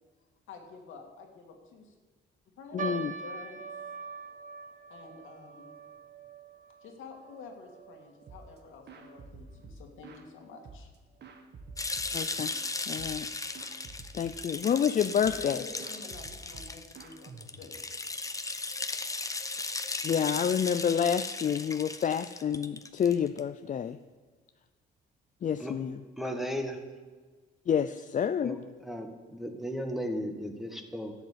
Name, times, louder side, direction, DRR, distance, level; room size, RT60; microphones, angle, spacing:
voice 1, 0.5-1.9 2.6-3.6 4.9-5.8 6.8-10.9 15.2-18.0 26.2-26.4, left 4 dB, 85° left, 2 dB, 2.3 m, -49 dB
voice 2, 2.7-3.1 12.1-12.5 12.9-13.3 14.1-15.6 20.0-24.0 25.4-26.0 27.7-28.6, left 8 dB, 40° left, 10 dB, 0.5 m, -28 dB
sound 1, 2.8-9.3 9.5-9.6 10.4-10.7 11.3-11.4 11.7-11.9, right 5 dB, 40° right, 1.2 m, -43 dB
sound 2, 8.3-8.6 8.9-10.3 10.6-12.6 13.0-13.3 13.5-14.9 15.2-15.5 15.8-17.9, right 3 dB, 60° right, 1.6 m, -49 dB
sound 3, 11.8-23.4, left 3 dB, 15° left, 0.9 m, -36 dB
voice 3, 26.2-26.8 28.4-31.1, equal, ahead, 3 dB, 1.6 m, -35 dB
11.5 x 8.0 x 7.5 m, 1.4 s
cardioid pair, 90°, 20 cm